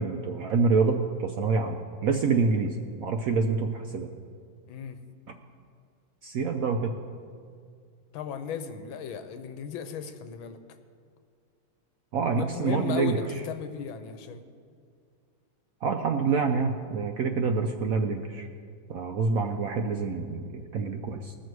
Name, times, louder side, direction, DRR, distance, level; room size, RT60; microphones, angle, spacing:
voice 1, 0.0-2.7 3.0-4.1 6.2-6.9 12.1-13.2 15.8-18.5 18.9-21.3, right 4 dB, 75° right, 4 dB, 0.7 m, -27 dB
voice 2, 4.7-5.0 8.1-10.6 12.3-14.4, left 8 dB, 80° left, 9 dB, 1.5 m, -36 dB
19.5 x 6.7 x 4.7 m, 2.1 s
omnidirectional pair, 2.2 m